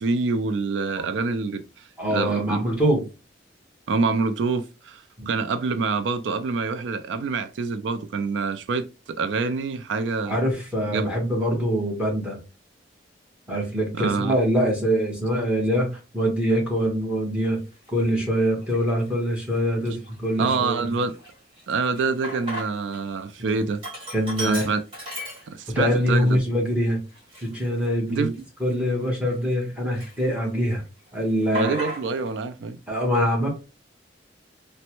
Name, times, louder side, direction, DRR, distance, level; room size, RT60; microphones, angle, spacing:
voice 1, 0.0-2.6 3.9-10.4 10.9-11.1 13.9-14.3 20.4-21.2 21.7-23.8 24.4-24.8 25.5-26.4 28.1-28.3 31.5-32.8, right 4 dB, 85° right, 0.4 m, -26 dB
voice 2, 2.0-3.0 5.2-5.3 10.2-12.4 13.5-17.6 17.9-21.0 23.4-23.5 24.1-24.6 25.7-27.0 27.4-28.3 28.6-30.8 31.1-31.8 32.9-33.5, equal, 5° right, 1.1 m, -24 dB
Sink (filling or washing), 17.7-17.9 18.5-19.1 19.5-19.6 19.9-23.0 23.3-25.9 26.3-26.4 27.1-29.6 29.9-30.7 31.0-32.3, right 2 dB, 30° right, 1.7 m, -37 dB
3.2 x 2.1 x 2.9 m
head